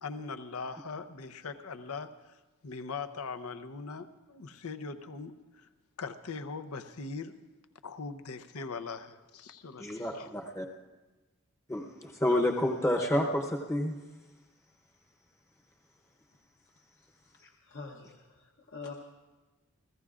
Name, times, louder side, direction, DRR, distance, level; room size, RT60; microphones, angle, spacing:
voice 1, 0.0-2.3 2.6-5.7 6.0-7.3 7.8-10.3, left 4 dB, 80° left, 9 dB, 0.8 m, -41 dB
voice 2, 9.8-10.7 11.7-13.9, left 1 dB, 15° left, -1 dB, 0.8 m, -29 dB
voice 3, 17.3-18.9, left 4 dB, 55° left, 0 dB, 1.0 m, -46 dB
29.5 x 15.5 x 2.5 m, 1.2 s
head